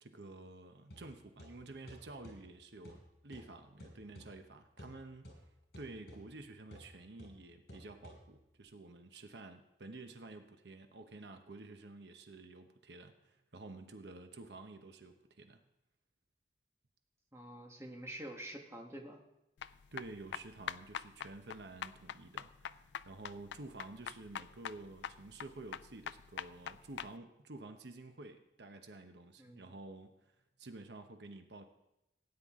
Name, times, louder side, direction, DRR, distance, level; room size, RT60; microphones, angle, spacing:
voice 1, 0.0-5.5 5.8-15.6 19.6-30.3 30.6-31.6, right 2 dB, 80° right, 7 dB, 1.0 m, -51 dB
sound 1, 0.9-8.6, equal, 60° left, 5.5 m, -56 dB
voice 2, 17.3-19.2 29.4-29.7, right 1 dB, 15° right, 1 dB, 1.5 m, -47 dB
sound 2, 19.6-27.1, left 8 dB, 90° left, 0.4 m, -44 dB
17.0 x 9.8 x 3.7 m, 0.90 s
head